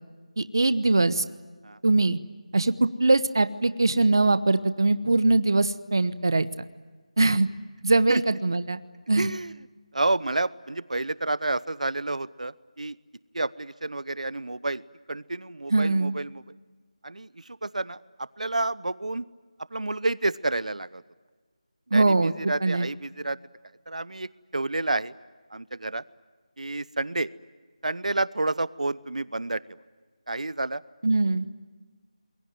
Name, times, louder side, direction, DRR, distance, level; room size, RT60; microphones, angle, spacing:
voice 1, 0.4-1.2 1.8-2.2 2.5-6.5 7.2-7.5 7.8-8.8 9.1-9.3 15.7-16.1 21.9-22.3 22.6-22.9 31.0-31.5, right 2 dB, 40° right, 14 dB, 0.9 m, -22 dB
voice 2, 9.2-9.5 9.9-13.0 13.3-14.8 15.1-16.4 17.0-19.3 19.7-21.0 21.9-23.4 23.9-25.1 25.5-26.0 26.6-27.3 27.8-29.6 30.3-30.8, right 2 dB, 85° right, 19 dB, 0.9 m, -29 dB
28.0 x 22.0 x 9.2 m, 1.4 s
figure-of-eight pair, 180°, 4 cm